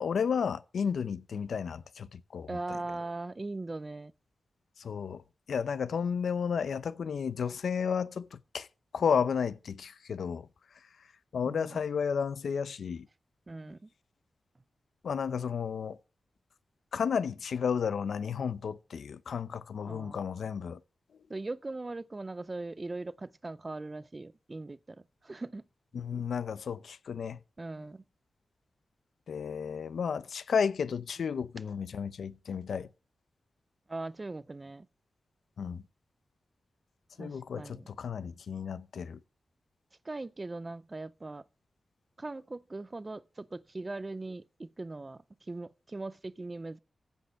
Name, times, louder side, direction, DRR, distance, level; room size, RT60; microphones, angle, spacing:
voice 1, 0.0-2.8 4.8-5.2 5.5-8.7 8.9-10.5 10.7-11.1 11.3-13.1 15.0-16.0 16.9-20.8 25.9-27.4 29.3-32.9 35.6-35.8 37.2-39.2, left 6 dB, 85° left, 0.6 m, -32 dB
voice 2, 2.5-4.1 11.4-11.8 13.5-13.9 19.9-20.2 21.3-25.6 27.6-28.0 33.9-34.9 37.2-37.9 40.0-41.4 42.2-46.8, right 2 dB, 25° right, 0.4 m, -40 dB
15.0 x 5.4 x 5.6 m
wide cardioid pair, 175°, 0 cm